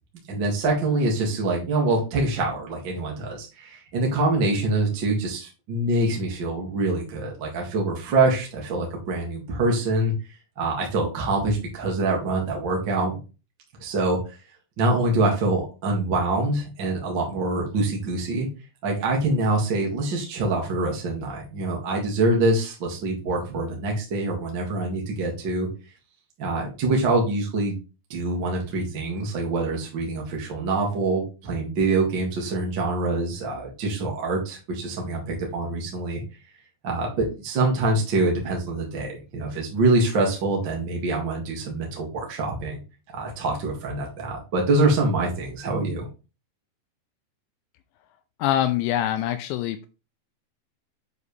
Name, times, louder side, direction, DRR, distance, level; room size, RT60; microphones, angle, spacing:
voice 1, 0.3-10.1 10.6-13.2 13.8-14.2 14.8-18.5 18.8-25.7 26.4-27.8 28.1-36.2 36.8-42.8 43.1-46.1, right 2 dB, 60° right, 0 dB, 1.1 m, -25 dB
voice 2, 48.4-49.9, left 12 dB, 85° left, 10 dB, 2.6 m, -24 dB
8.0 x 5.1 x 3.2 m, 0.31 s
omnidirectional pair, 5.5 m